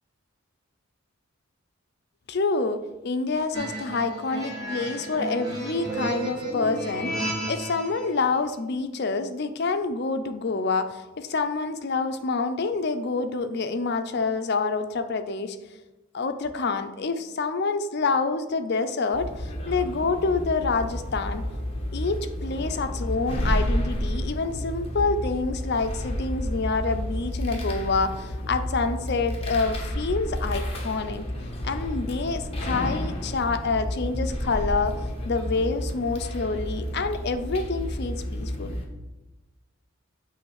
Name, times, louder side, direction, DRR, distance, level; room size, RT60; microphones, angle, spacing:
voice 1, 2.3-15.6 16.1-21.4 21.9-31.3 31.6-35.0 35.2-38.8, left 4 dB, 50° left, 9 dB, 0.5 m, -27 dB
sound 1, 3.5-8.0, right 1 dB, 20° right, 1.9 m, -32 dB
sound 2, 19.1-38.8, equal, 30° left, 1.2 m, -31 dB
8.5 x 3.2 x 6.4 m, 1.1 s
head